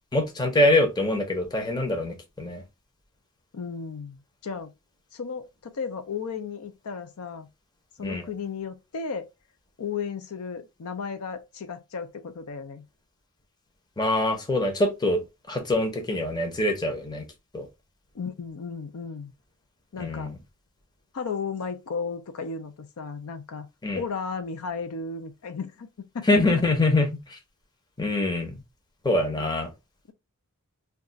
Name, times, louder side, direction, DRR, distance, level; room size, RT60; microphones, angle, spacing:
voice 1, 0.1-2.6 8.0-8.3 14.0-15.2 15.5-17.2 17.5-17.7 20.0-20.3 23.8-24.0 26.3-27.4 28.0-28.6 29.0-29.7, left 2 dB, 20° left, 0.6 m, -24 dB
voice 2, 3.5-4.7 5.1-7.5 8.0-9.3 9.8-12.8 18.1-19.3 19.9-20.3 21.1-23.7 23.9-25.9 26.1-26.3 26.5-26.6 29.3-29.4, left 5 dB, 80° left, 0.5 m, -34 dB
2.4 x 2.3 x 3.8 m
head